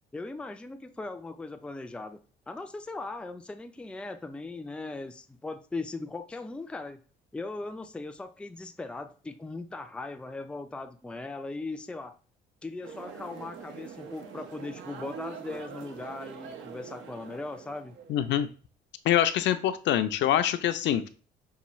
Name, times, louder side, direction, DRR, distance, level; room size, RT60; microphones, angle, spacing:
voice 1, 0.1-2.2 2.5-7.0 7.3-12.2 12.6-18.0, left 3 dB, 5° left, 0.4 m, -39 dB
sound 1, 12.8-18.3, right 6 dB, 75° right, 0.8 m, -44 dB
voice 2, 18.1-18.5 19.1-21.1, left 11 dB, 65° left, 0.5 m, -25 dB
5.6 x 2.3 x 3.0 m
cardioid pair, 100°, 20 cm